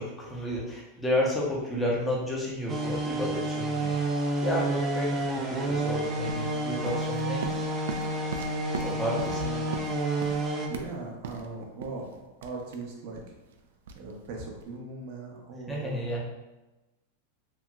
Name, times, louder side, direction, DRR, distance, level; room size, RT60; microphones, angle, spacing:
voice 1, 0.0-7.7 8.8-9.4 15.7-16.2, left 1 dB, 10° left, -4 dB, 0.8 m, -31 dB
sound 1, 2.7-10.7, right 2 dB, 20° right, 0.5 m, -30 dB
sound 2, 6.0-14.8, right 5 dB, 80° right, 0.3 m, -41 dB
voice 2, 9.4-9.7 10.6-12.1 12.4-13.4 13.9-16.0, right 3 dB, 55° right, 0 dB, 0.7 m, -39 dB
3.0 x 2.7 x 2.3 m, 1.1 s
hypercardioid pair, 130°, 0 cm